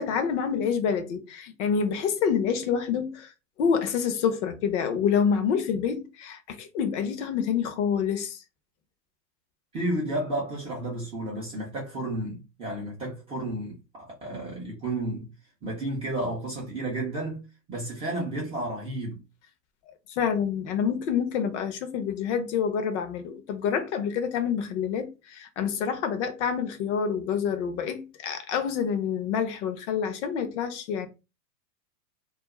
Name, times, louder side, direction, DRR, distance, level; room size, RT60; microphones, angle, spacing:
voice 1, 0.0-3.3 3.6-8.4 20.1-31.1, left 7 dB, 45° left, 0.6 m, -27 dB
voice 2, 9.7-15.3 15.6-17.4 17.7-19.2, right 1 dB, 15° right, 0.4 m, -32 dB
2.4 x 2.0 x 3.0 m
hypercardioid pair, 115°, 50 cm